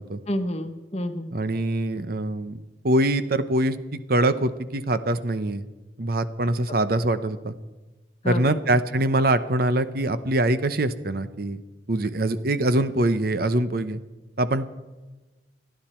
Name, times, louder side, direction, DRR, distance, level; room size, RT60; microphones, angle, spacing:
voice 1, 0.3-1.3 8.2-8.6, left 1 dB, 35° left, 8 dB, 1.2 m, -29 dB
voice 2, 1.3-2.6 2.8-3.8 4.1-5.6 6.0-7.5 8.3-11.6 11.9-14.0 14.4-14.7, right 1 dB, 60° right, 12 dB, 0.8 m, -23 dB
27.0 x 10.5 x 4.4 m, 1.2 s
head